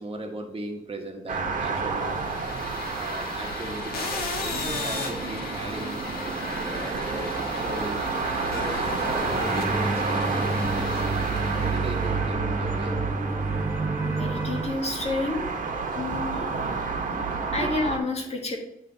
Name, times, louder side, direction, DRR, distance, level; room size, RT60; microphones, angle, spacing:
voice 1, 0.0-2.2 2.9-6.0 6.4-8.0 8.7-11.0 11.6-13.0 16.4-16.5 17.4-17.7, right 1 dB, 35° right, 2 dB, 1.1 m, -38 dB
sound 1, 1.3-18.0, right 4 dB, 60° right, 1.2 m, -30 dB
sound 2, 2.0-12.2, left 3 dB, 90° left, 1.3 m, -36 dB
sound 3, 4.4-14.6, right 2 dB, 15° right, 0.6 m, -32 dB
voice 2, 14.0-15.4 15.9-16.4 17.5-18.6, left 2 dB, 45° left, 1 dB, 1.5 m, -29 dB
9.4 x 3.2 x 3.9 m, 0.83 s
cardioid pair, 90°, 16 cm